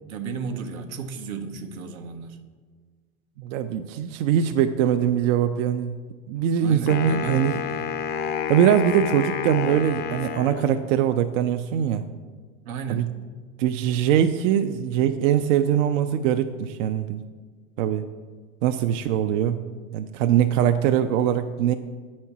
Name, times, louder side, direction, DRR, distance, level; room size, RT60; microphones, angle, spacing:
voice 1, 0.1-2.4 6.6-7.6 12.7-13.1, right 5 dB, 85° right, 7 dB, 0.9 m, -34 dB
voice 2, 3.4-6.0 6.3-7.6 8.5-12.1 12.9-13.1 13.6-17.2 17.8-18.1 18.6-19.6 19.9-21.7, right 9 dB, 65° right, 8 dB, 0.5 m, -22 dB
Wind instrument woodwind instrument, 6.9-11.1, left 7 dB, 25° left, 0.4 m, -30 dB
8.5 x 4.3 x 5.9 m, 1.5 s
supercardioid pair, 125°, 41 cm